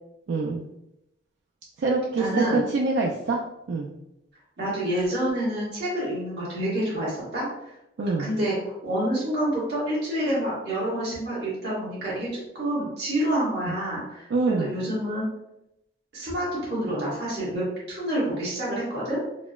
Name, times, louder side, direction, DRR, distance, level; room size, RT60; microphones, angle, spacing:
voice 1, 0.3-0.6 1.8-3.4 3.7-3.9 8.0-8.3 13.7-13.8 14.3-14.8, right 3 dB, 75° right, -1 dB, 0.3 m, -25 dB
voice 2, 2.2-2.6 4.6-7.5 8.2-12.3 12.5-15.2 16.1-19.2, right 1 dB, 60° right, -9 dB, 1.4 m, -28 dB
4.0 x 2.0 x 2.3 m, 0.85 s
head